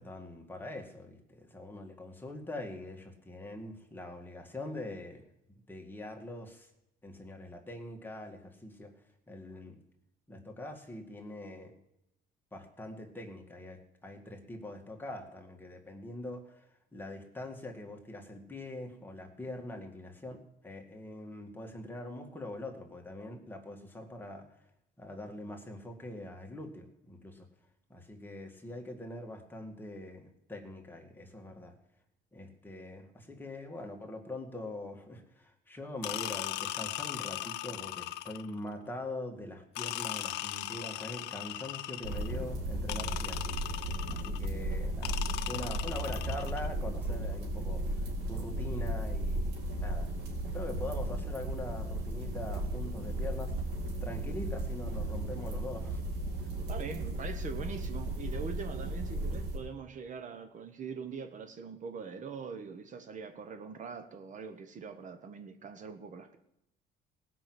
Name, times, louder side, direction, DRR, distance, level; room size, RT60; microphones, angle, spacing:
voice 1, 0.0-5.2 5.7-6.7 7.0-8.9 9.3-9.8 10.3-11.8 12.5-24.5 25.0-27.5 27.9-31.7 32.3-43.6 44.1-45.2 45.5-48.0 48.3-50.1 50.5-53.5 54.0-56.0 56.4-56.5, left 1 dB, 10° left, 2 dB, 2.0 m, -43 dB
sound 1, 36.0-38.6 39.7-42.4 42.9-44.5 45.0-46.7, left 15 dB, 80° left, 0.6 m, -38 dB
sound 2, 42.0-59.6, right 1 dB, 85° right, 4.2 m, -35 dB
voice 2, 56.7-66.4, right 5 dB, 50° right, 8 dB, 1.2 m, -43 dB
17.5 x 6.0 x 7.9 m, 0.81 s
cardioid pair, 110°, 17 cm